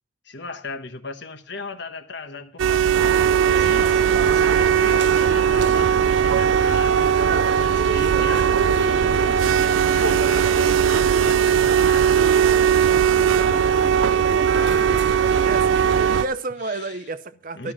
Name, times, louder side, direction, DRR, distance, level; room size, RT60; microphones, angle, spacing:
voice 1, 0.2-7.1 7.5-12.5 16.6-17.0 17.5-17.7, left 3 dB, 60° left, 1.3 m, -37 dB
sound 1, 2.6-16.3, right 9 dB, 85° right, 0.4 m, -19 dB
sound 2, 2.9-16.2, right 3 dB, 65° right, 1.2 m, -27 dB
voice 2, 13.4-14.9 15.3-17.7, right 3 dB, 45° right, 0.7 m, -33 dB
13.0 x 5.6 x 7.3 m
head